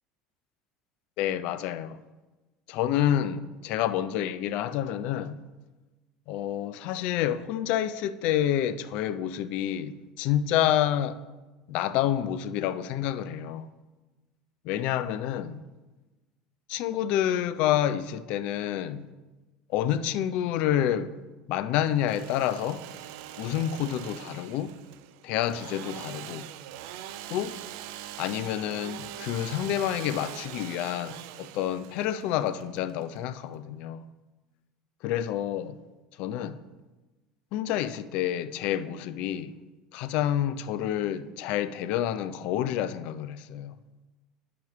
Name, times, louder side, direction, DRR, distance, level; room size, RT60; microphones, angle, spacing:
voice 1, 1.2-2.0 2.7-5.4 6.3-11.2 11.7-13.7 14.6-15.6 16.7-19.1 19.7-21.2 21.5-22.9 23.4-24.7 25.2-26.5 27.3-27.6 28.2-34.0 35.0-35.8 36.2-36.6 37.5-39.5 39.9-43.7, left 11 dB, 55° left, 0.4 m, -28 dB
Engine / Sawing, 21.9-33.6, right 12 dB, 55° right, 0.3 m, -43 dB
10.0 x 6.0 x 3.0 m
figure-of-eight pair, 70°, 2 cm